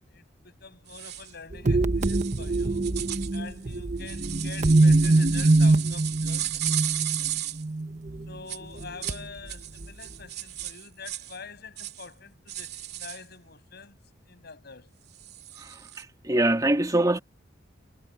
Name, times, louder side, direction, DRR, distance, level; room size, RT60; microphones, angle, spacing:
voice 1, 0.1-2.9 3.3-7.4 8.3-14.0 14.3-14.9, left 4 dB, 60° left, 7.3 m, -46 dB
sound 1, 0.9-1.3 2.0-7.6 8.5-9.2 9.5-11.4 11.8-12.1 12.5-13.2 15.1-16.0, right 13 dB, 60° right, 2.4 m, -35 dB
sound 2, 1.5-8.3 8.8-9.2 9.8-9.9, right 2 dB, 40° right, 1.0 m, -23 dB
voice 2, 16.0-17.2, right 1 dB, 20° right, 2.6 m, -23 dB
head